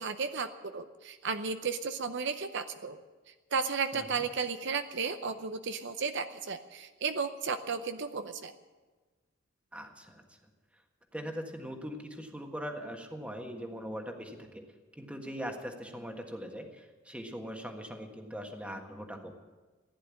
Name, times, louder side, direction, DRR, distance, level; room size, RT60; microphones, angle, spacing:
voice 1, 0.0-3.0 3.5-8.5, right 5 dB, 60° right, 9 dB, 0.7 m, -34 dB
voice 2, 3.9-4.2 9.7-10.2 11.1-14.6 15.0-19.3, equal, 5° right, 3 dB, 1.5 m, -41 dB
15.5 x 10.5 x 8.4 m, 1.3 s
head